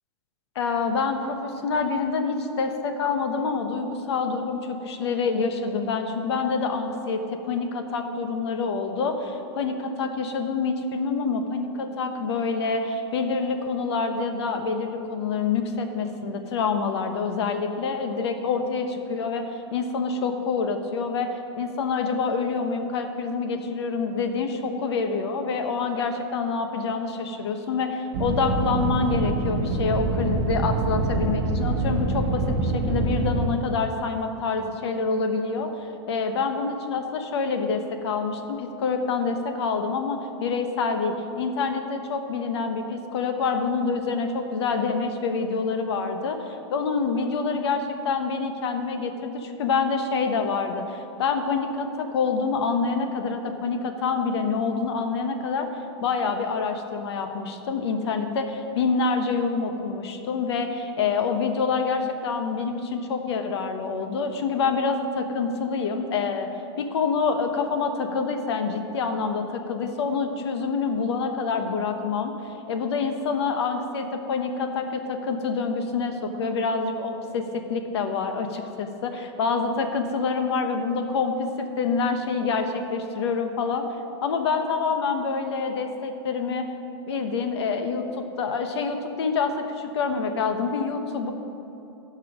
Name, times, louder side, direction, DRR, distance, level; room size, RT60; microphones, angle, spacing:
voice 1, 0.5-35.7 36.1-55.7 56.0-66.5 66.8-72.3 72.7-83.9 84.2-86.7 87.1-91.3, left 4 dB, 70° left, 6 dB, 1.1 m, -27 dB
sound 1, 28.1-33.5, right 2 dB, 50° right, 1.0 m, -25 dB
15.0 x 5.5 x 5.0 m, 3.0 s
supercardioid pair, 165°, 15 cm